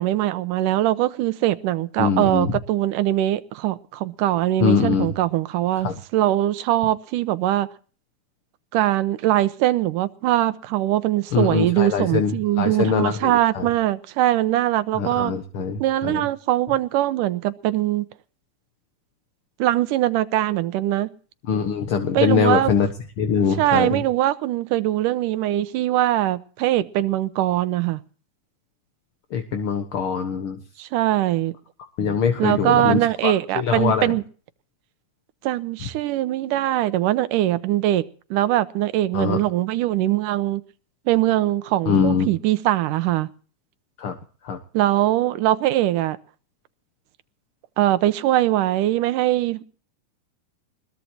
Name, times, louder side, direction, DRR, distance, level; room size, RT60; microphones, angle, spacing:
voice 1, 0.0-7.7 8.7-15.3 15.8-18.1 19.6-21.1 22.1-22.7 23.4-28.0 30.8-31.5 32.4-34.2 35.4-38.0 38.3-40.6 41.1-43.3 44.7-46.2 47.8-49.6, right 14 dB, 85° right, 2.4 m, -22 dB
voice 2, 2.0-2.5 4.6-5.1 5.8-5.9 11.3-13.7 15.0-16.2 21.5-22.9 23.2-24.0 29.3-30.6 32.0-34.2 39.1-39.4 41.9-42.3 44.0-44.1 44.4-44.6, left 6 dB, 55° left, 1.7 m, -23 dB
21.0 x 19.5 x 2.9 m
omnidirectional pair, 3.6 m